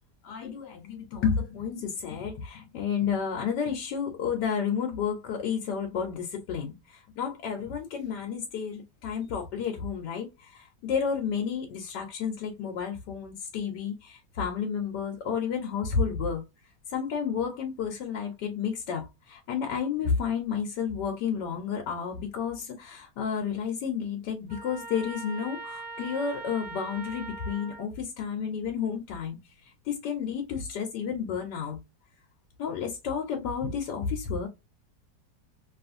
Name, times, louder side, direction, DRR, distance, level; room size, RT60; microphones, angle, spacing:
voice 1, 0.2-16.4 16.9-31.8 32.6-34.5, left 6 dB, 85° left, 1.2 m, -31 dB
Trumpet, 24.5-27.9, right 3 dB, 75° right, 1.1 m, -41 dB
2.9 x 2.4 x 2.4 m
omnidirectional pair, 1.8 m